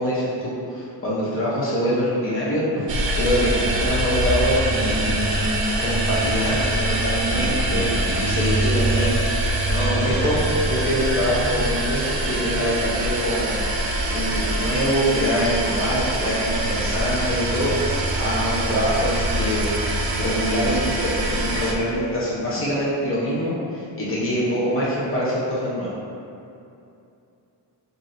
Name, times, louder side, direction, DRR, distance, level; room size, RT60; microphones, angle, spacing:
voice 1, 0.0-2.9 3.1-5.1 5.8-7.9 8.2-10.4 10.7-13.6 14.1-17.8 18.2-19.7 20.2-25.9, equal, 30° left, -8 dB, 0.9 m, -24 dB
sound 1, 2.9-21.7, right 1 dB, 55° right, 0.6 m, -24 dB
voice 2, 4.7-5.6 7.3-8.2 10.0-10.5, right 1 dB, 85° left, -7 dB, 1.2 m, -31 dB
7.0 x 2.8 x 2.6 m, 2.6 s
wide cardioid pair, 175°, 44 cm